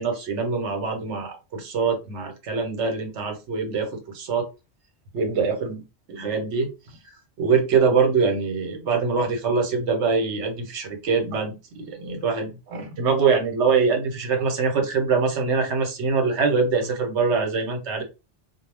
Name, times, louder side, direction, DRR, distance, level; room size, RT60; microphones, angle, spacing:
voice 1, 0.0-4.5 5.1-5.8 6.1-6.7 7.4-18.0, right 5 dB, 75° right, 4 dB, 1.1 m, -24 dB
2.2 x 2.1 x 3.3 m, 0.27 s
omnidirectional pair, 1.2 m